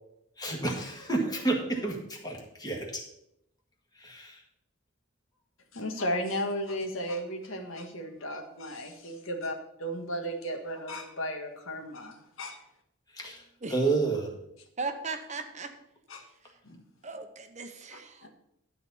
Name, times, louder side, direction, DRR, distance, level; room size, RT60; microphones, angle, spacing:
voice 1, 0.4-2.9 4.0-4.4 13.1-13.4 13.7-14.3, right 3 dB, 20° left, 0 dB, 1.7 m, -30 dB
voice 2, 5.7-12.6 16.1-16.2 16.6-16.8 17.9-18.3, equal, 70° left, 4 dB, 1.5 m, -35 dB
voice 3, 14.8-15.7 17.0-18.3, right 4 dB, 35° right, 7 dB, 0.7 m, -37 dB
12.0 x 4.2 x 7.0 m, 0.78 s
head